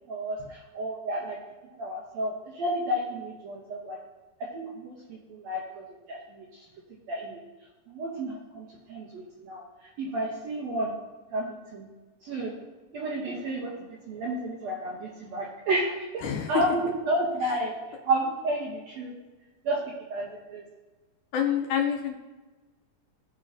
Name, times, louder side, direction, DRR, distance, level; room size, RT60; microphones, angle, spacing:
voice 1, 0.1-1.4 1.7-4.0 4.5-6.5 7.1-7.4 7.9-9.6 10.0-10.9 11.3-11.9 12.2-12.5 12.9-13.7 14.1-17.8 18.0-19.1 19.6-19.8 20.1-20.6, right 1 dB, 75° right, -3 dB, 1.6 m, -31 dB
voice 2, 21.3-22.2, left 9 dB, 80° left, 2 dB, 1.9 m, -27 dB
14.5 x 5.3 x 2.6 m, 1.2 s
omnidirectional pair, 3.9 m